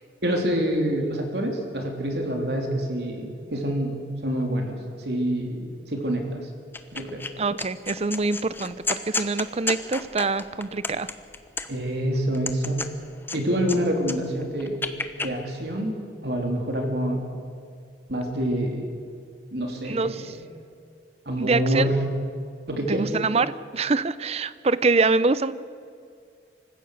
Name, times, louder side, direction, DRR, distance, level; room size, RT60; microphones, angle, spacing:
voice 1, 0.2-4.0 4.2-6.4 6.9-7.2 11.7-12.8 13.3-14.8 15.2-15.9 16.2-17.2 18.1-18.9 19.5-20.5 21.2-22.0 22.7-23.1, equal, 65° right, 2 dB, 3.4 m, -26 dB
sound 1, 6.7-7.3 7.6-11.9 12.3-13.8 14.0-15.3, left 3 dB, 15° left, 0.9 m, -31 dB
voice 2, 7.4-11.1 19.8-20.3 21.4-21.9 22.9-25.5, right 3 dB, 35° right, 16 dB, 0.6 m, -25 dB
25.5 x 15.5 x 6.6 m, 2.3 s
head